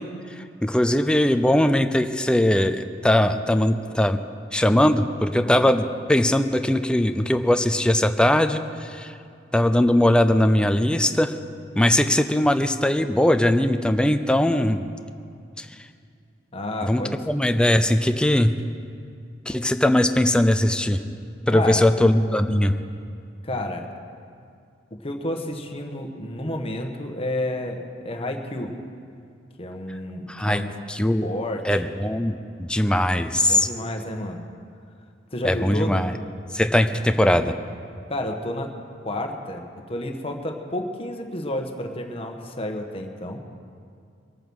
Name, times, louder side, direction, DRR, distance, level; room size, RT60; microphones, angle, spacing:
voice 1, 0.4-4.2 4.5-9.1 9.5-11.4 11.7-14.9 15.6-15.7 16.8-18.5 19.5-21.0 21.5-22.7 30.3-30.6 30.9-31.3 31.6-33.7 35.4-36.1 36.5-37.5, left 1 dB, 5° left, 8 dB, 0.5 m, -20 dB
voice 2, 16.5-17.2 21.5-21.9 23.4-23.9 25.0-28.7 29.6-30.7 31.2-31.9 33.5-34.4 35.3-36.1 38.1-38.8 39.0-39.6 39.9-43.4, left 1 dB, 30° left, 3 dB, 1.3 m, -30 dB
22.5 x 9.0 x 6.2 m, 2.3 s
head